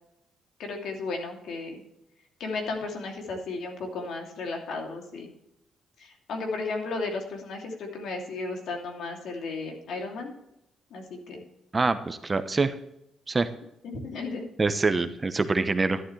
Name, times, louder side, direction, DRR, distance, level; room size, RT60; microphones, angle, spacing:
voice 1, 0.6-1.8 2.4-5.3 6.0-10.3 10.9-11.4 13.8-14.4, left 3 dB, 75° left, 2 dB, 2.7 m, -34 dB
voice 2, 11.7-12.7 13.3-13.5 14.6-16.0, right 3 dB, 25° right, 10 dB, 0.9 m, -25 dB
11.5 x 11.0 x 3.3 m, 0.83 s
cardioid pair, 90°, 0 cm